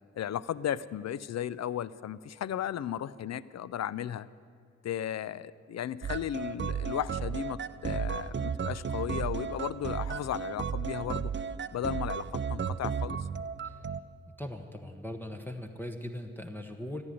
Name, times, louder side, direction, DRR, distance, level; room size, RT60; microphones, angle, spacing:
voice 1, 0.2-4.3 4.8-11.3 11.7-13.3, left 10 dB, 55° left, 19 dB, 0.6 m, -35 dB
sound 1, 6.0-14.0, right 7 dB, 35° right, 0.6 m, -34 dB
voice 2, 14.4-17.0, left 1 dB, 5° left, 3 dB, 1.2 m, -40 dB
14.5 x 8.9 x 9.9 m, 2.2 s
supercardioid pair, 45°, 31 cm